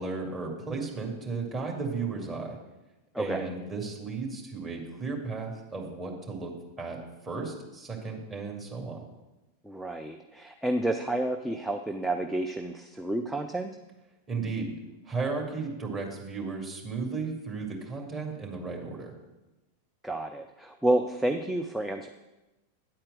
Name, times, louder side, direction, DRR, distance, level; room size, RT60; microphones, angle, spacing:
voice 1, 0.0-2.6 3.2-6.5 6.8-9.0 14.3-14.7 15.0-19.1, right 4 dB, 20° right, -1 dB, 2.3 m, -34 dB
voice 2, 3.1-3.5 9.6-13.7 20.0-22.1, right 1 dB, 5° right, 4 dB, 0.5 m, -30 dB
9.6 x 4.4 x 7.6 m, 1.0 s
figure-of-eight pair, 90°, 0 cm